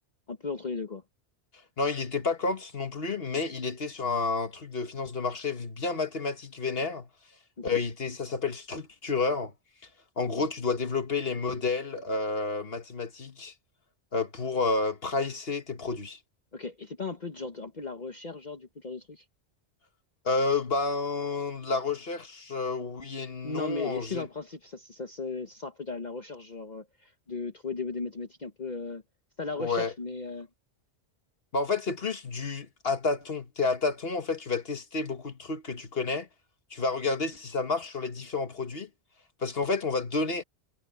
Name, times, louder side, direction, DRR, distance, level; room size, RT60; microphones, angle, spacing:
voice 1, 0.3-1.0 7.6-7.8 16.5-19.2 23.4-29.0 29.4-30.5, left 4 dB, 40° left, 1.2 m, -36 dB
voice 2, 1.8-7.1 7.6-9.5 10.2-13.5 14.1-16.2 20.3-24.3 29.6-29.9 31.5-36.3 36.7-38.9 39.4-40.4, left 4 dB, 60° left, 1.9 m, -30 dB
omnidirectional pair, 1.2 m